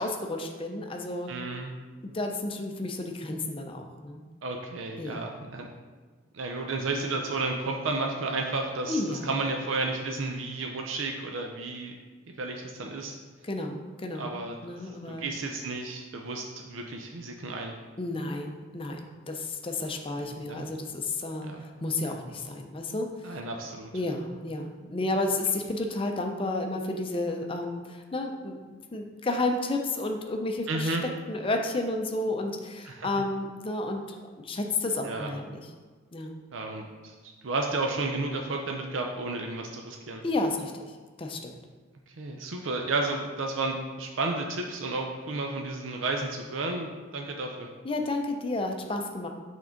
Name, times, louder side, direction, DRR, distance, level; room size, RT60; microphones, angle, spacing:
voice 1, 0.0-1.3 2.0-4.3 5.0-5.2 8.9-9.4 13.4-14.3 14.6-15.3 18.0-23.3 23.9-31.0 31.3-35.7 36.1-36.4 40.2-41.5 47.8-49.3, left 2 dB, 25° left, 4 dB, 0.5 m, -32 dB
voice 2, 1.3-1.7 4.4-5.7 6.3-11.9 12.4-13.2 14.1-17.7 20.2-20.8 21.4-21.6 23.2-23.9 30.7-31.0 32.8-33.1 35.0-35.3 36.5-40.2 42.1-47.7, right 3 dB, 70° right, 2 dB, 0.5 m, -32 dB
5.9 x 3.7 x 5.1 m, 1.4 s
head